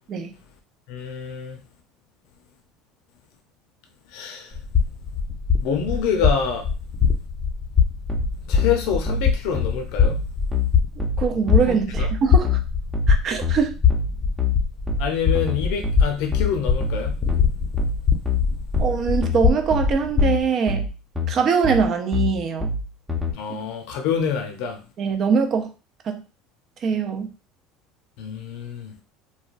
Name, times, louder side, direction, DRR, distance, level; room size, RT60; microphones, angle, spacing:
voice 1, 0.9-1.6 4.1-4.5 5.6-6.7 8.5-10.2 11.7-12.1 15.0-17.2 23.3-24.8 28.2-28.9, left 6 dB, 70° left, 0.6 m, -26 dB
sound 1, 4.5-20.4, left 6 dB, 30° left, 0.6 m, -23 dB
sound 2, 8.1-23.3, left 4 dB, 10° right, 0.7 m, -26 dB
voice 2, 11.2-12.6 13.1-13.7 18.8-20.8 21.3-22.7 25.0-25.7 26.0-26.2 26.8-27.3, right 6 dB, 40° right, 0.5 m, -22 dB
3.1 x 2.2 x 2.5 m
supercardioid pair, 120°, 0 cm